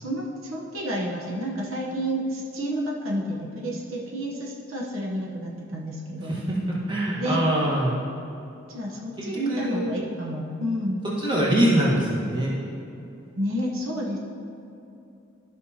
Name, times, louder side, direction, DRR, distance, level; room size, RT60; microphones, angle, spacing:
voice 1, 0.0-6.4 7.1-7.4 8.7-11.1 13.4-14.2, equal, 85° right, -2 dB, 1.0 m, -30 dB
voice 2, 6.3-8.0 9.2-9.9 11.0-12.6, right 1 dB, 20° right, -6 dB, 1.4 m, -24 dB
13.0 x 5.5 x 2.8 m, 2.8 s
head